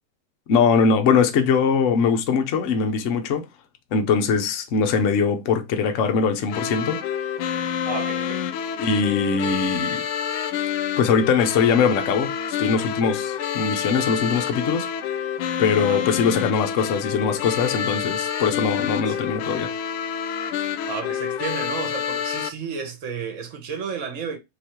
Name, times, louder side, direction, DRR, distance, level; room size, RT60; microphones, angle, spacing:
voice 1, 0.5-3.5 3.9-7.0 8.8-10.0 11.0-14.9 15.6-19.7, left 5 dB, 65° left, 0.7 m, -21 dB
sound 1, 6.5-22.5, left 8 dB, 85° left, 1.5 m, -28 dB
voice 2, 7.8-8.4 15.8-16.0 19.1-19.2 20.9-24.4, right 6 dB, 45° right, 1.1 m, -32 dB
3.9 x 3.0 x 4.3 m
omnidirectional pair, 2.3 m